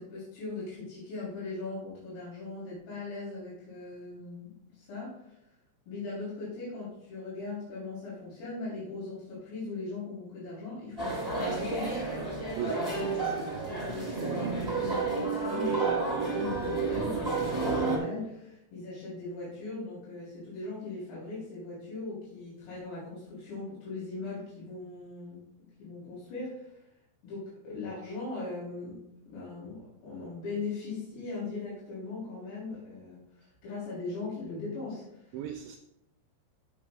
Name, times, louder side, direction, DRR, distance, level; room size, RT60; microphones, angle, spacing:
voice 1, 0.0-4.5 4.8-5.2 5.9-12.1 12.8-13.3 13.7-25.4 25.8-26.8 27.2-29.0 29.3-35.2, left 3 dB, 75° left, -8 dB, 6.2 m, -39 dB
sound 1, 11.0-18.0, right 3 dB, 5° right, 2.9 m, -30 dB
voice 2, 12.6-13.7 35.3-35.8, right 8 dB, 85° right, 4 dB, 2.6 m, -38 dB
16.0 x 7.2 x 2.4 m, 0.86 s
omnidirectional pair, 5.9 m